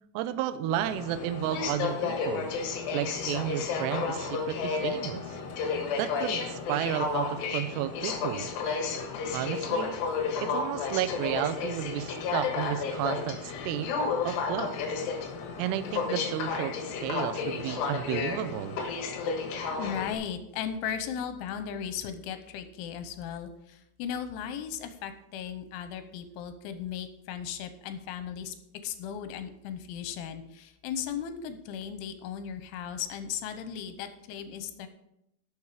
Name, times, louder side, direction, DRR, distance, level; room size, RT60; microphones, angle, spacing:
voice 1, 0.1-2.5 2.9-5.4 6.0-8.5 9.3-10.0 10.4-13.9 14.2-14.7 15.6-18.8, right 12 dB, 90° right, 11 dB, 2.4 m, -32 dB
Aircraft, 0.7-20.2, left 5 dB, 65° left, 3.3 m, -32 dB
voice 2, 19.8-28.5 28.8-34.9, left 8 dB, 85° left, 9 dB, 3.2 m, -36 dB
11.5 x 7.0 x 4.8 m, 0.78 s
omnidirectional pair, 5.5 m